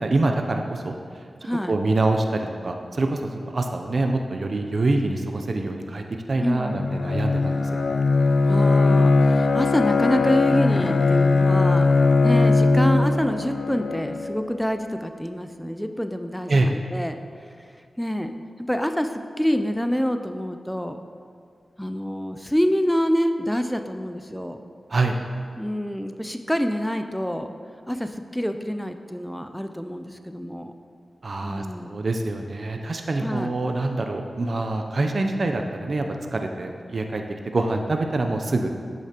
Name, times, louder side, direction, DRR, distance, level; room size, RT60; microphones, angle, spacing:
voice 1, 0.0-0.9 1.7-7.7 16.5-16.7 24.9-25.2 31.2-36.1 36.3-38.7, right 2 dB, 60° right, 4 dB, 0.5 m, -25 dB
voice 2, 1.4-1.8 6.4-6.8 8.5-11.9 12.2-21.0 21.8-24.6 25.6-27.5 27.9-30.7 31.4-32.0 33.2-33.5, equal, 5° left, 7 dB, 0.4 m, -27 dB
Bowed string instrument, 6.6-14.5, left 3 dB, 75° left, 0.4 m, -20 dB
8.2 x 6.6 x 2.9 m, 2.3 s
cardioid pair, 50°, 0 cm